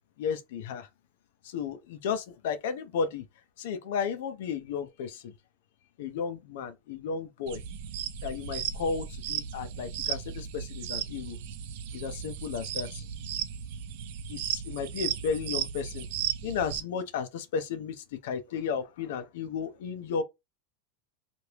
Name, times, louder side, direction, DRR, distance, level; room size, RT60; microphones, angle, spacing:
voice 1, 0.2-0.9 1.4-3.2 3.6-5.3 6.0-7.6 8.2-11.4 11.9-13.0 14.3-16.1 16.4-20.2, left 6 dB, 70° left, 0.6 m, -33 dB
sound 1, 7.5-16.8, right 9 dB, 60° right, 0.5 m, -35 dB
3.3 x 2.5 x 2.9 m
supercardioid pair, 165°, 0 cm